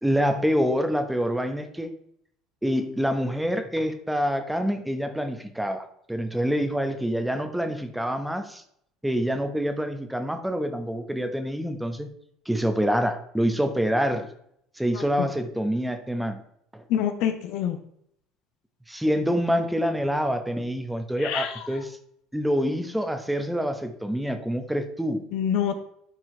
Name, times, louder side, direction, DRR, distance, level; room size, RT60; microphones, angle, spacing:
voice 1, 0.0-1.9 2.6-8.6 9.0-12.1 12.4-14.3 14.8-16.4 16.7-16.8 18.9-22.0 22.3-25.2, equal, 5° right, 7 dB, 1.1 m, -26 dB
voice 2, 14.9-15.3 16.9-17.8 21.2-21.8 25.3-25.7, left 9 dB, 60° left, 8 dB, 0.9 m, -27 dB
11.5 x 4.6 x 3.3 m, 0.71 s
hypercardioid pair, 65°, 0 cm